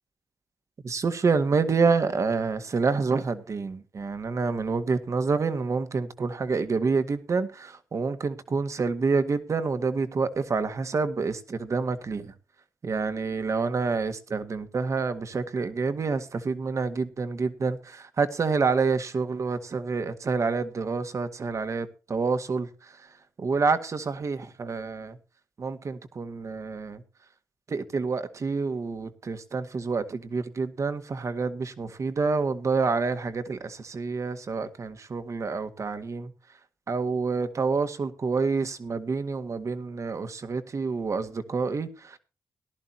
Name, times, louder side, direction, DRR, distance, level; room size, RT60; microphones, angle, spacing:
voice 1, 0.8-12.3 12.8-23.1 23.4-25.2 25.6-27.0 27.7-36.3 36.9-42.2, right 4 dB, 55° right, 1.7 m, -28 dB
18.0 x 11.5 x 2.8 m
cardioid pair, 55°, 6 cm